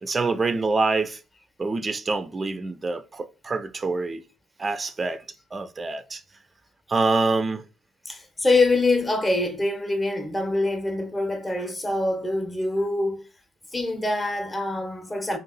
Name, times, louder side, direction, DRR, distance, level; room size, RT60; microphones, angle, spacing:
voice 1, 0.0-1.2 1.6-4.2 4.6-5.2 5.5-6.2 6.9-7.6, right 3 dB, 30° right, 0.4 m, -26 dB
voice 2, 8.0-13.2 13.7-15.4, left 2 dB, 15° left, 0.8 m, -24 dB
2.7 x 2.5 x 3.9 m
hypercardioid pair, 55°, 0 cm